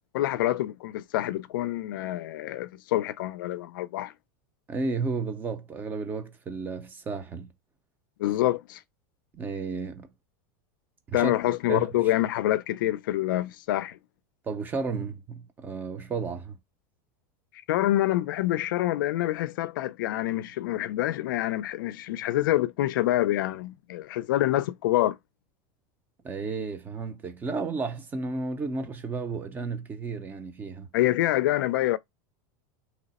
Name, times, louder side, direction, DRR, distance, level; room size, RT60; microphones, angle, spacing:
voice 1, 0.1-4.1 8.2-8.8 11.1-14.0 17.7-25.2 30.9-32.0, left 15 dB, 80° left, 0.4 m, -26 dB
voice 2, 4.7-7.5 9.3-10.1 11.1-11.3 11.7-11.9 14.5-16.6 26.2-30.9, right 4 dB, 15° right, 0.5 m, -33 dB
2.9 x 2.0 x 4.0 m
supercardioid pair, 150°, 11 cm